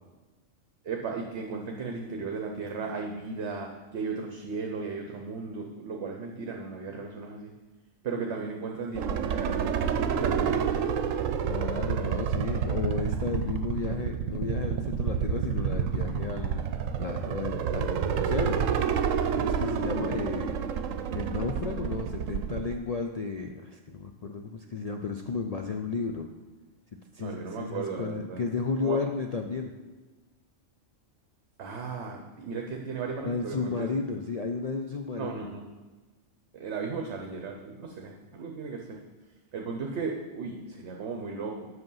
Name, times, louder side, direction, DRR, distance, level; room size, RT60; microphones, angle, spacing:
voice 1, 0.8-7.5 8.0-10.7 19.9-20.0 27.2-28.4 28.8-29.0 31.6-33.9 35.1-35.7 36.5-39.0 39.5-41.7, right 4 dB, 65° right, 2 dB, 1.0 m, -36 dB
sound 1, 9.0-22.7, right 7 dB, 85° right, 1.0 m, -29 dB
voice 2, 11.4-16.7 17.0-18.6 19.4-20.6 21.1-26.3 26.9-29.7 33.2-35.5, left 4 dB, 60° left, 3 dB, 0.4 m, -33 dB
7.9 x 6.0 x 5.5 m, 1.2 s
omnidirectional pair, 1.3 m